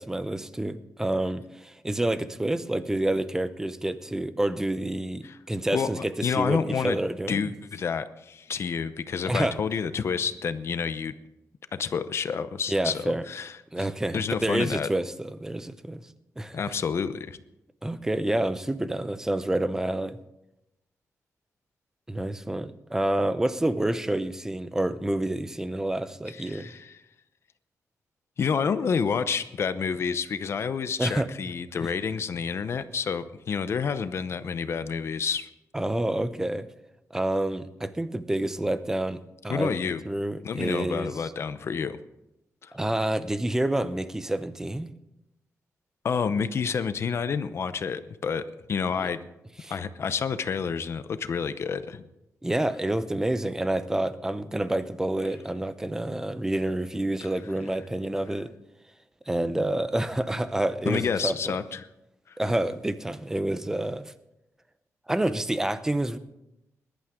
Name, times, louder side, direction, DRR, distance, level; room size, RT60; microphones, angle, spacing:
voice 1, 0.0-7.5 9.3-9.6 12.7-13.2 13.7-16.0 16.4-16.7 17.8-20.2 22.1-26.7 31.0-31.3 35.7-36.7 37.1-39.8 40.0-41.1 42.7-44.9 49.6-49.7 52.4-58.5 59.3-61.6 62.4-64.1 65.1-66.2, right 1 dB, 10° right, 12 dB, 0.7 m, -28 dB
voice 2, 5.7-7.0 7.3-11.1 11.8-13.9 14.1-14.9 16.5-17.4 26.3-27.0 28.4-35.5 39.5-40.0 40.4-42.0 42.6-42.7 46.0-48.4 48.7-49.2 49.7-52.0 60.9-61.8 62.3-62.4, left 6 dB, 50° left, 12 dB, 0.7 m, -29 dB
21.0 x 11.5 x 3.7 m, 0.89 s
wide cardioid pair, 155°, 6 cm